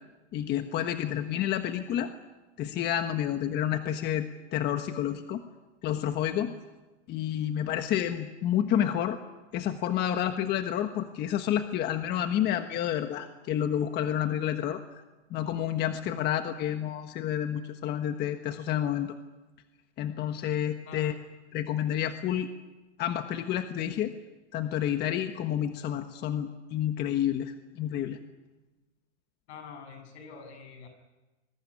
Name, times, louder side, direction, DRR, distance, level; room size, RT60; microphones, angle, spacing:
voice 1, 0.3-2.1 2.6-5.4 5.8-6.5 7.1-9.2 9.5-14.8 15.3-19.1 20.0-21.1 21.5-22.5 23.0-24.1 24.5-28.2, left 10 dB, 30° left, 8 dB, 1.4 m, -29 dB
voice 2, 29.5-30.9, left 5 dB, 70° left, 7 dB, 7.6 m, -46 dB
26.5 x 21.5 x 9.9 m, 1.1 s
supercardioid pair, 155°, 35 cm